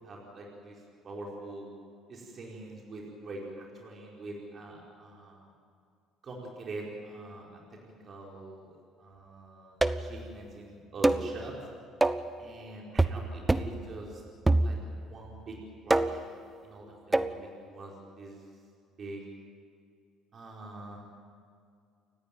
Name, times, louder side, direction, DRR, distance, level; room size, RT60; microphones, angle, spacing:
voice 1, 0.0-1.7 2.1-5.5 6.2-8.7 9.0-11.5 12.4-14.2 14.6-15.6 15.8-16.3 16.6-18.4 19.0-19.2 20.3-21.0, right 2 dB, 40° right, -2 dB, 5.2 m, -44 dB
sound 1, 9.8-10.2 11.0-11.3 12.0-12.3 13.0-13.2 13.5-13.8 14.5-15.0 15.9-16.3 17.1-17.4, right 2 dB, 15° right, 1.1 m, -25 dB
29.0 x 15.0 x 9.4 m, 2.3 s
supercardioid pair, 95°, 0 cm